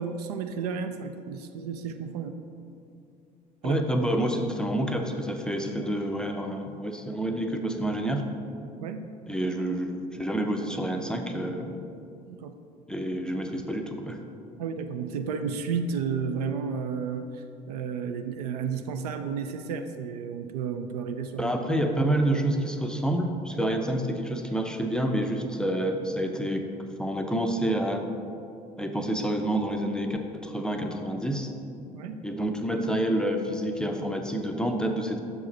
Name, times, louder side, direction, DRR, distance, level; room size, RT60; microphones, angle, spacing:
voice 1, 0.0-2.4 3.6-3.8 8.8-9.1 12.3-12.5 14.6-21.5 31.9-32.2, right 6 dB, 70° right, 7 dB, 0.4 m, -32 dB
voice 2, 3.6-8.3 9.3-11.8 12.9-14.2 21.4-26.6 27.0-28.0 28.8-31.5 32.2-35.2, right 1 dB, 5° left, 3 dB, 0.5 m, -28 dB
6.6 x 4.7 x 4.1 m, 2.5 s
figure-of-eight pair, 60°, 21 cm